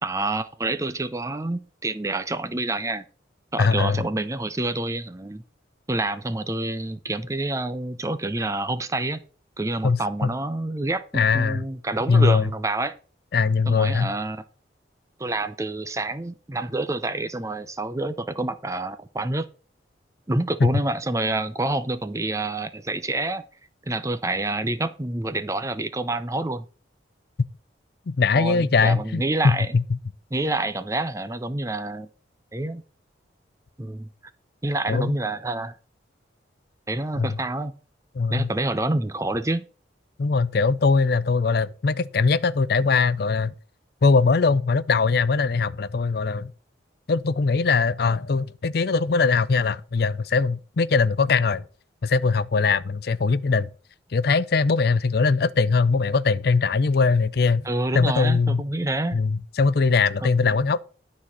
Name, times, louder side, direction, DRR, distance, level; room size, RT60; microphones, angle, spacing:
voice 1, 0.0-3.0 3.5-5.4 5.9-9.2 9.6-13.0 13.7-14.4 15.2-19.5 20.3-23.4 23.9-26.7 28.3-29.7 30.3-32.1 32.5-32.8 33.8-34.1 34.6-35.8 36.9-37.7 38.3-39.6 57.6-59.2 60.4-60.6, right 2 dB, 15° right, 0.5 m, -27 dB
voice 2, 3.6-4.0 9.8-10.3 11.1-11.6 12.1-12.5 13.3-14.1 20.6-20.7 28.1-29.8 34.9-35.1 37.2-37.4 38.1-38.5 40.2-43.5 44.0-46.5 47.1-51.6 52.0-53.7 54.1-57.7 57.9-58.6 59.1-60.8, left 4 dB, 55° left, 0.4 m, -21 dB
12.0 x 4.2 x 7.3 m
head